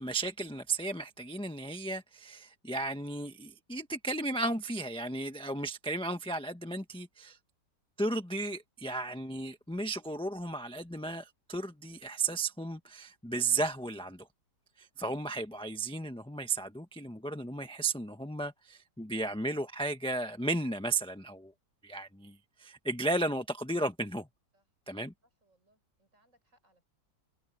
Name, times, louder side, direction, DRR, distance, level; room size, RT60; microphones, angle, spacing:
voice 1, 0.0-7.4 8.0-14.3 14.8-21.5 21.8-24.3 24.9-25.1, right 2 dB, 5° left, 1.0 m, -34 dB
voice 2, 25.4-26.8, right 1 dB, 45° right, 7.7 m, -70 dB
omnidirectional pair, 1.9 m